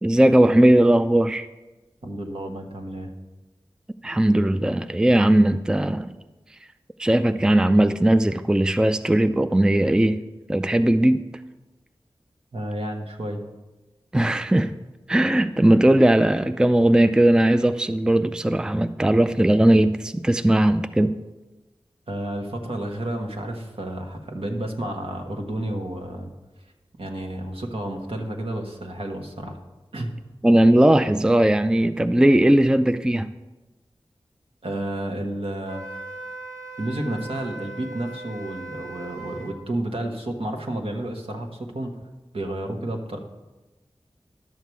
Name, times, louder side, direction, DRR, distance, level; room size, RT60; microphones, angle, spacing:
voice 1, 0.0-1.5 4.0-6.2 7.0-10.2 10.5-11.3 14.1-14.7 15.1-21.2 30.4-33.3, right 1 dB, 10° right, 10 dB, 0.4 m, -18 dB
voice 2, 2.0-3.1 12.5-13.4 22.1-26.3 27.0-29.6 29.9-30.1 34.6-35.8 36.8-42.0 42.3-43.2, right 1 dB, 70° right, 2 dB, 1.4 m, -31 dB
Wind instrument woodwind instrument, 35.7-39.6, right 2 dB, 35° right, 1.3 m, -38 dB
11.0 x 6.7 x 4.6 m, 1.1 s
cardioid pair, 45°, 10 cm